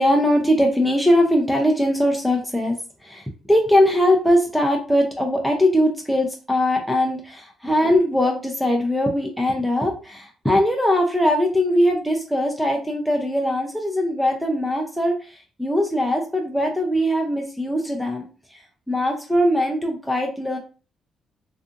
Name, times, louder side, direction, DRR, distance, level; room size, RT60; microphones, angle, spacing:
voice 1, 0.0-20.6, left 1 dB, ahead, 2 dB, 0.4 m, -21 dB
2.5 x 2.4 x 2.5 m, 0.36 s
cardioid pair, 90°, 0 cm